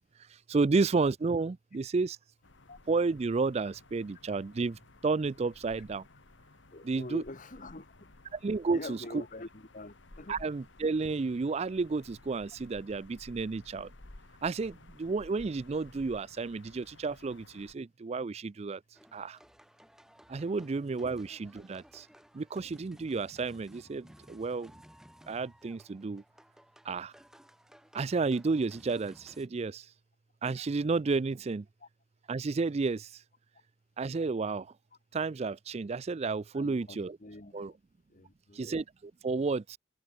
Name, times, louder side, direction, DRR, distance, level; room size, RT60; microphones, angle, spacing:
voice 1, 0.3-2.2 2.9-6.0 6.8-7.2 8.3-9.2 10.3-13.9 14.4-18.8 19.1-19.4 20.3-22.1 22.3-24.7 25.3-26.2 26.8-27.1 27.9-29.9 30.4-31.7 32.3-33.2 34.0-34.7 35.1-37.2 37.5-37.7 38.5-39.8, right 4 dB, 35° right, 0.4 m, -31 dB
sound 1, 2.4-17.7, left 2 dB, 80° left, 1.9 m, -56 dB
voice 2, 6.7-8.1 8.7-10.4 20.5-20.6 31.8-31.9 36.5-37.7 38.1-38.6, left 2 dB, 45° left, 1.6 m, -45 dB
sound 2, 18.9-29.5, equal, 5° right, 2.8 m, -58 dB
head